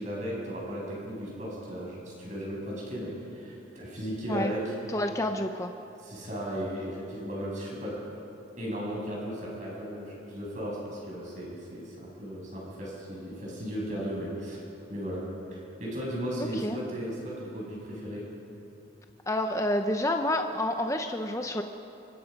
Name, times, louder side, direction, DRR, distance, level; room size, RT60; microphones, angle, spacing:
voice 1, 0.0-5.0 6.0-7.9 8.6-14.6 14.9-15.2 15.5-18.3, equal, 40° right, -4 dB, 7.7 m, -36 dB
voice 2, 4.9-5.7 16.6-16.8 19.3-21.6, left 1 dB, 15° left, 5 dB, 0.8 m, -28 dB
24.5 x 24.5 x 5.4 m, 2.8 s
head